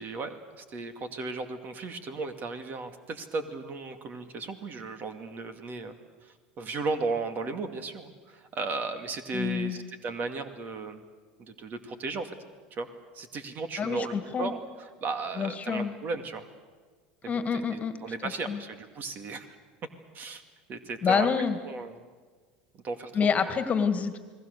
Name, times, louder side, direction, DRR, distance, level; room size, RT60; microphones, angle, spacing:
voice 1, 0.0-6.0 6.2-11.0 11.4-12.3 12.7-12.9 13.1-16.4 17.2-19.6 20.1-20.4 20.7-21.3 21.6-22.1 22.7-23.1, right 3 dB, 40° right, 8 dB, 2.4 m, -35 dB
voice 2, 9.3-9.8 13.8-14.5 15.4-15.9 17.3-18.0 18.2-18.6 21.0-21.6 23.1-24.2, left 6 dB, 30° left, 9 dB, 2.2 m, -27 dB
29.5 x 20.0 x 6.8 m, 1.5 s
hypercardioid pair, 85°, 5 cm